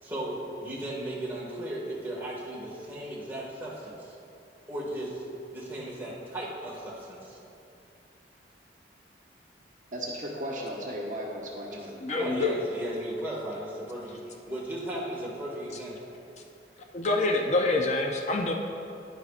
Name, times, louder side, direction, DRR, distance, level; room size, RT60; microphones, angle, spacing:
voice 1, 0.0-4.1 4.7-5.2 5.5-7.4 11.7-16.1, right 1 dB, 10° right, -7 dB, 1.8 m, -36 dB
voice 2, 9.9-11.9, equal, 45° right, -3 dB, 1.2 m, -35 dB
voice 3, 12.0-12.6 16.9-18.5, left 2 dB, 40° left, 3 dB, 0.5 m, -26 dB
10.5 x 9.7 x 2.5 m, 2.7 s
head